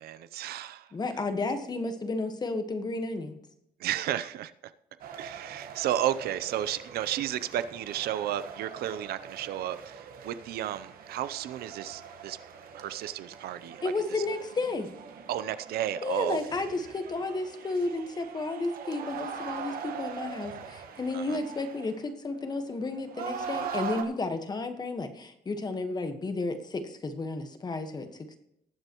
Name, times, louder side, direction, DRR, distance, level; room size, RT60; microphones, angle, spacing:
voice 1, 0.0-0.9 3.8-4.5 5.2-12.4 12.7-13.8 15.3-16.4 21.1-21.4, right 11 dB, 90° right, 14 dB, 0.6 m, -33 dB
voice 2, 0.9-3.4 13.8-14.9 16.0-28.4, left 3 dB, 25° left, 8 dB, 1.3 m, -32 dB
sound 1, 5.0-24.0, right 6 dB, 70° right, 1.5 m, -42 dB
19.5 x 7.9 x 3.0 m, 0.80 s
cardioid pair, 145°, 16 cm